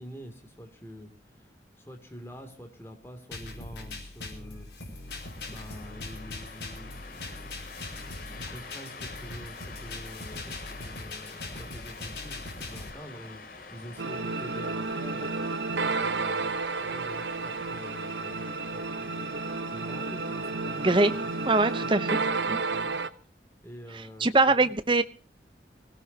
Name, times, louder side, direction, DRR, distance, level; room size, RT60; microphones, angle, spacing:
voice 1, 0.0-15.3 16.0-21.5 21.8-22.0 22.5-23.0 23.6-24.7, equal, 15° left, 5 dB, 2.8 m, -47 dB
sound 1, 3.3-12.9, left 2 dB, 75° left, 5.0 m, -41 dB
sound 2, 5.1-22.0, left 3 dB, 55° left, 3.0 m, -47 dB
sound 3, 14.0-23.1, right 3 dB, 85° right, 1.0 m, -31 dB
voice 2, 21.4-22.1 22.5-22.6 24.2-25.0, right 2 dB, 30° right, 12 dB, 0.8 m, -22 dB
24.5 x 17.0 x 2.9 m, 0.34 s
head